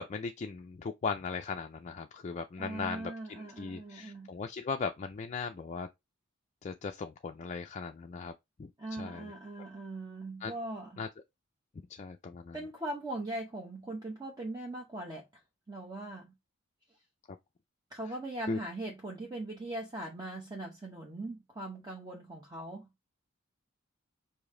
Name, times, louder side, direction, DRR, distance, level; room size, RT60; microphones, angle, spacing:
voice 1, 0.0-5.9 6.6-8.3 8.6-9.3 10.4-10.5 11.0-11.1 11.9-12.6 18.5-18.6, left 5 dB, 35° left, 0.4 m, -38 dB
voice 2, 2.6-4.3 8.8-11.0 12.5-15.2 15.7-16.3 17.9-22.9, right 2 dB, 20° right, 0.8 m, -40 dB
5.0 x 2.7 x 3.6 m
head